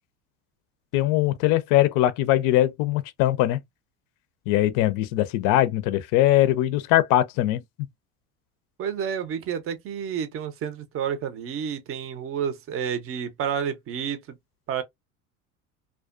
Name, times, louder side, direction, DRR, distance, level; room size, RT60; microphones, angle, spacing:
voice 1, 0.9-3.6 4.5-7.6, left 14 dB, 55° left, 0.5 m, -21 dB
voice 2, 8.8-14.4 14.7-14.8, right 8 dB, 35° right, 0.6 m, -30 dB
2.3 x 2.2 x 2.3 m
hypercardioid pair, 80°, 40 cm